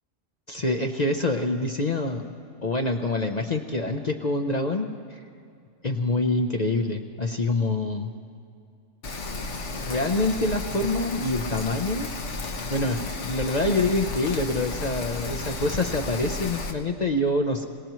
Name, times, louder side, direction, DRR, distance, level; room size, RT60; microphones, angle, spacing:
voice 1, 0.5-2.3 2.6-5.2 5.8-8.1 9.3-9.4 9.7-12.1 12.7-17.6, left 2 dB, 40° left, 4 dB, 0.7 m, -26 dB
Rain, 9.0-16.7, left 2 dB, 75° left, 1.5 m, -33 dB
26.5 x 18.0 x 3.1 m, 2.4 s
omnidirectional pair, 1.3 m